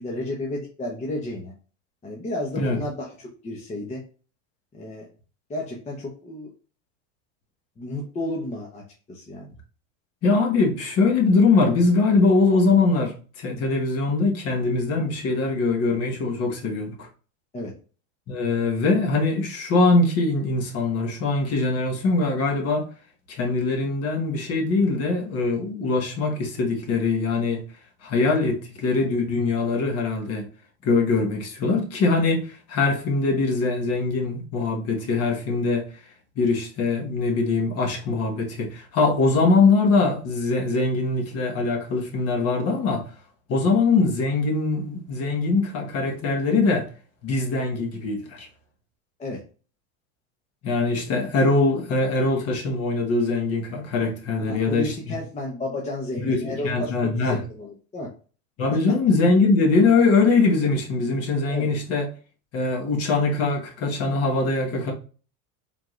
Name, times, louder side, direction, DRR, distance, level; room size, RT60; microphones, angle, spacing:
voice 1, 0.0-1.5 2.0-4.0 4.7-5.1 5.5-6.5 7.8-8.8 9.1-9.5 17.5-17.7 43.6-43.7 49.2-49.4 54.4-58.1 58.7-59.0 61.5-61.7, left 1 dB, 15° left, 0.8 m, -32 dB
voice 2, 10.2-17.1 18.3-22.9 23.3-27.6 28.0-30.5 30.8-35.9 36.4-43.1 43.5-46.9 47.2-48.5 50.6-54.9 56.2-57.4 58.6-62.1 62.5-64.9, left 3 dB, 35° left, 1.3 m, -22 dB
4.7 x 3.7 x 2.4 m
supercardioid pair, 130°, 40 cm